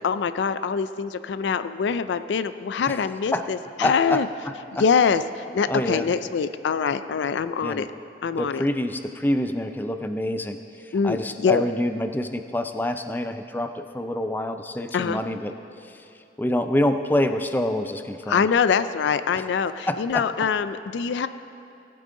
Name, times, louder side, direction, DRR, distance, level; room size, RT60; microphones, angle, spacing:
voice 1, 0.0-4.3 4.8-7.9 8.2-8.6 10.9-11.6 14.9-15.2 18.3-21.3, left 6 dB, 80° left, 13 dB, 0.4 m, -24 dB
voice 2, 3.8-4.2 4.8-4.9 5.7-6.1 7.6-7.9 8.4-15.5 15.8-16.0 16.4-18.5 19.3-19.4 19.9-20.3, left 1 dB, 10° left, 8 dB, 0.4 m, -26 dB
18.5 x 8.6 x 3.7 m, 2.8 s
head